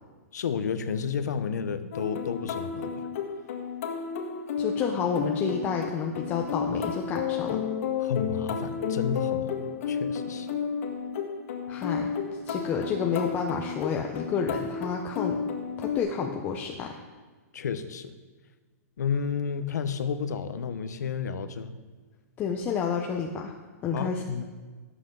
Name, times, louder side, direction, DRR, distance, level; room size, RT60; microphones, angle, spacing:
voice 1, 0.3-3.0 8.0-9.5 9.9-10.5 17.5-18.1 19.0-21.7 23.9-24.4, left 6 dB, 85° left, 11 dB, 1.0 m, -31 dB
sound 1, 1.9-16.0, left 6 dB, 60° left, 1.9 m, -32 dB
voice 2, 4.6-7.6 11.7-12.1 12.4-15.4 15.8-17.0 22.4-23.5 23.8-24.4, left 6 dB, 20° left, 2 dB, 0.8 m, -30 dB
17.5 x 8.1 x 3.9 m, 1.4 s
hypercardioid pair, 155°, 9 cm